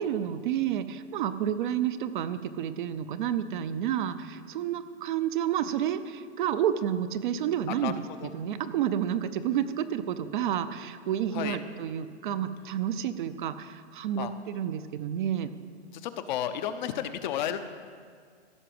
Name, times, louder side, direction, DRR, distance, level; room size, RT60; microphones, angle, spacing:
voice 1, 0.0-8.0 8.3-15.5, right 10 dB, 45° right, 10 dB, 0.7 m, -30 dB
voice 2, 15.9-17.6, left 10 dB, 40° left, 9 dB, 0.7 m, -32 dB
15.5 x 5.8 x 7.7 m, 2.1 s
hypercardioid pair, 155°, 36 cm